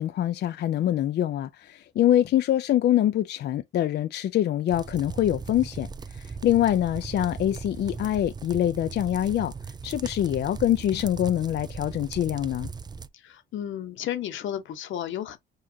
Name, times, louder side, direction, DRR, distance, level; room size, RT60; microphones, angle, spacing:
voice 1, 0.0-9.5 9.8-12.7, left 11 dB, 60° left, 0.4 m, -25 dB
sound 1, 4.7-13.1, right 5 dB, 20° right, 0.4 m, -38 dB
voice 2, 13.1-15.4, left 10 dB, 75° left, 1.0 m, -33 dB
6.4 x 2.4 x 2.8 m
cardioid pair, 90°, 20 cm